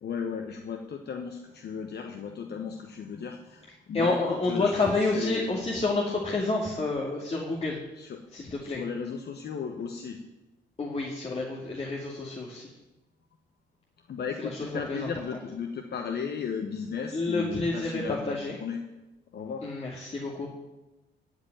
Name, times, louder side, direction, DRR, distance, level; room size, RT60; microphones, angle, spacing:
voice 1, 0.0-4.7 5.0-5.5 8.0-8.2 8.6-10.2 14.1-18.8 19.3-19.6, left 6 dB, 55° left, 4 dB, 1.2 m, -35 dB
voice 2, 3.9-7.8 8.3-8.8 10.8-12.7 14.4-15.1 17.1-18.5 19.6-20.5, left 3 dB, 30° left, -3 dB, 2.4 m, -29 dB
15.5 x 5.3 x 9.0 m, 1.0 s
cardioid pair, 90°, 20 cm